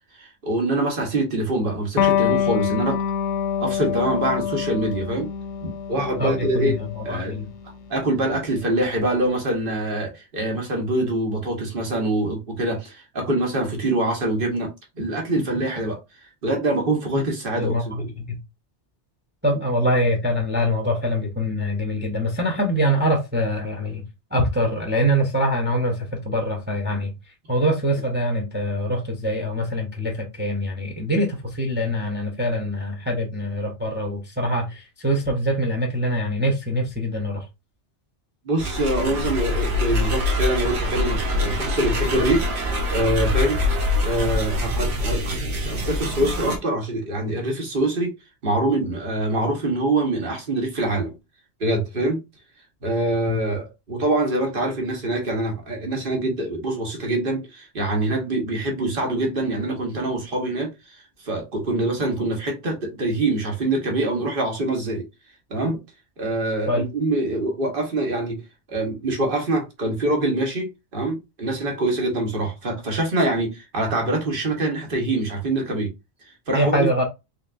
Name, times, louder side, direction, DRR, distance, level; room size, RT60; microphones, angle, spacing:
voice 1, 0.2-3.0 3.6-5.3 5.6-6.8 7.0-7.4 7.9-14.7 15.0-16.0 16.4-18.1 38.4-42.5 42.9-43.6 44.0-45.4 45.6-48.1 48.4-51.1 51.6-52.2 52.8-60.7 61.2-65.0 65.5-65.8 66.2-68.4 68.7-75.9 76.5-76.9, right 2 dB, 55° right, 1.4 m, -24 dB
Electric guitar, 2.0-9.1, left 8 dB, 85° left, 1.0 m, -26 dB
voice 2, 6.2-7.5 17.6-18.4 19.4-24.0 24.3-27.1 27.5-37.5 53.3-53.4 66.7-66.9 76.5-77.0, equal, 10° right, 0.7 m, -24 dB
sound 1, 38.6-46.6, left 1 dB, 70° right, 1.2 m, -24 dB
3.8 x 3.4 x 2.5 m
omnidirectional pair, 1.1 m